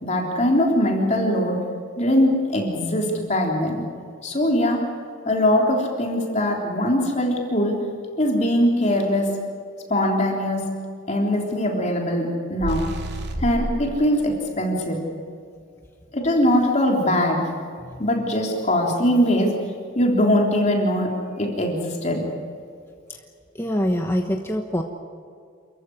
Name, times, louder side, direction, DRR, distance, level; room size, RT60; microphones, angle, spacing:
voice 1, 0.0-1.6 2.0-3.8 4.2-4.8 5.3-7.8 8.2-9.3 9.9-10.7 11.1-12.9 13.4-15.0 16.1-17.4 18.0-19.6 20.0-22.2, left 1 dB, 35° left, 0 dB, 3.5 m, -21 dB
sound 1, 12.6-13.8, right 1 dB, 55° right, 2.8 m, -28 dB
voice 2, 23.6-24.8, equal, 10° left, 3 dB, 1.2 m, -24 dB
28.5 x 15.0 x 9.8 m, 2.3 s
head